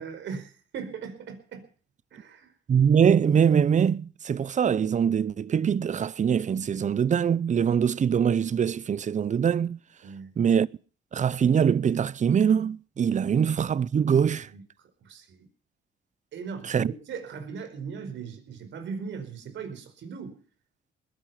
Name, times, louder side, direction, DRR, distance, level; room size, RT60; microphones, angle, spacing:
voice 1, 0.0-1.6 2.1-2.5 10.0-10.3 14.3-14.6 15.0-15.5 16.3-20.4, right 5 dB, 70° right, 4.9 m, -39 dB
voice 2, 2.7-9.8 10.4-10.7 11.1-14.5 16.7-16.9, right 7 dB, 40° right, 0.6 m, -23 dB
21.0 x 10.5 x 5.8 m
cardioid pair, 90°, 20 cm